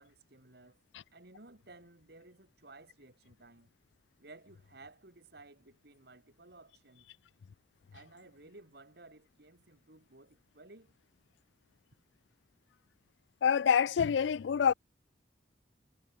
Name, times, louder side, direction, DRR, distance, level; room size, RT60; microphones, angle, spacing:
voice 1, 0.0-0.8 1.1-3.7 4.2-7.1 7.9-10.9, right 2 dB, 60° right, 2.7 m, -56 dB
voice 2, 13.4-14.7, left 7 dB, 75° left, 0.4 m, -26 dB
head